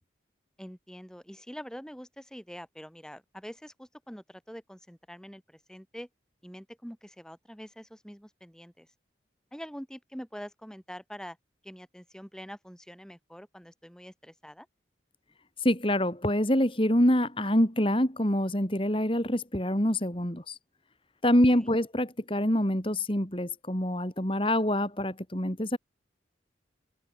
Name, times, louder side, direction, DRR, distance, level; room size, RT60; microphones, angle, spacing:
voice 1, 0.6-6.1 6.4-8.9 9.5-11.4 11.6-14.7 21.5-21.7, equal, 5° left, 7.6 m, -45 dB
voice 2, 15.6-20.6 21.2-25.8, left 1 dB, 30° left, 3.9 m, -26 dB
head